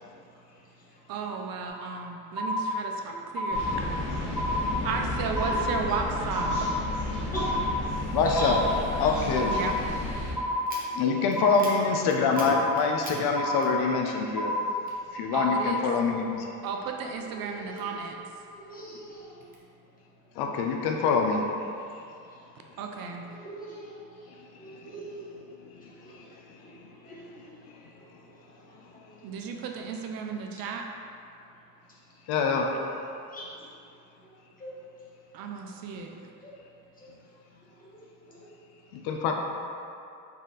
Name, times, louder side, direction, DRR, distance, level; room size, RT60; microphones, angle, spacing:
voice 1, 1.1-3.6 4.8-6.5 9.5-9.8 15.3-15.9 16.6-18.2 22.8-23.3 29.2-30.8 35.3-36.2, right 5 dB, 65° right, 2 dB, 0.5 m, -34 dB
sound 1, 1.7-2.0 2.4-3.0 3.4-4.0 4.4-5.0 5.4-6.0 6.4-7.0 7.4-8.0 8.4-9.0 9.4-10.0 10.4-11.0 11.4-12.0 12.4-13.0 13.4-14.0 14.4-15.0 15.4-16.0, left 1 dB, 5° right, 0.3 m, -31 dB
sound 2, 3.5-10.3, left 2 dB, 50° left, 0.9 m, -32 dB
voice 2, 8.1-8.6 9.0-9.6 10.2-10.3 10.9-14.5 15.1-16.5 20.4-21.5 24.8-24.9 26.1-26.3 32.3-32.7 38.9-39.3, left 5 dB, 80° left, 2 dB, 0.6 m, -25 dB
sound 3, 10.6-14.3 14.5-15.9 16.3-18.4 18.8-19.6, right 2 dB, 25° right, 0.7 m, -46 dB
voice 3, 17.3-17.9 18.5-19.4 23.3-23.9 24.6-25.3 27.0-27.4 29.1-29.2 33.3-33.4 34.6-34.7 36.4-36.5 37.9-38.0 38.4-38.5, right 1 dB, 20° left, -8 dB, 1.2 m, -40 dB
4.2 x 2.4 x 3.8 m, 2.6 s
cardioid pair, 110°, 38 cm